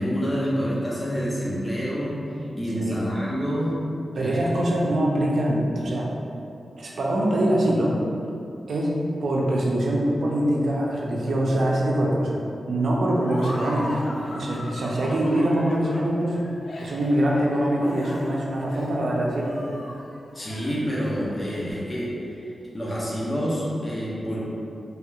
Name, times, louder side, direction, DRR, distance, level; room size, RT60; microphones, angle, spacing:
voice 1, 0.0-2.2 2.6-3.7 4.1-4.6 5.6-5.8 20.3-24.4, equal, 25° left, -7 dB, 0.7 m, -28 dB
voice 2, 4.2-6.1 6.8-7.9 8.7-8.9 9.2-12.4 12.7-14.0 14.3-16.4 16.8-19.6, right 1 dB, 75° right, -3 dB, 0.5 m, -23 dB
Laughter, 13.2-21.5, left 1 dB, 65° left, 0.4 m, -39 dB
3.4 x 2.8 x 2.3 m, 2.6 s
cardioid pair, 65°, 0 cm